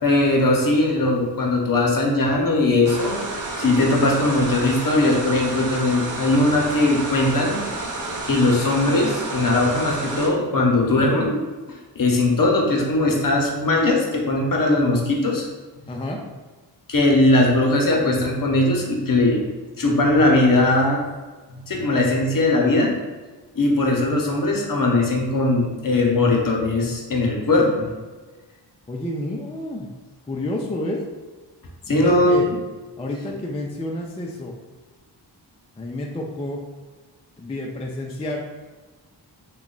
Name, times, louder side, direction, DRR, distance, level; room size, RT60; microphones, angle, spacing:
voice 1, 0.0-7.6 8.2-11.4 11.7-15.5 15.8-15.9 16.9-19.5 19.8-21.0 21.5-22.9 23.5-27.9 31.9-32.5, left 2 dB, 50° left, 0 dB, 0.8 m, -20 dB
sound 1, 2.8-10.3, right 2 dB, 45° right, 0.7 m, -30 dB
voice 2, 15.9-16.2 28.9-29.9 30.3-31.1 31.9-32.5 33.0-34.6 35.8-36.6 37.4-38.4, left 1 dB, 15° left, 0 dB, 0.4 m, -29 dB
3.0 x 2.3 x 3.8 m, 1.3 s
cardioid pair, 70°, 43 cm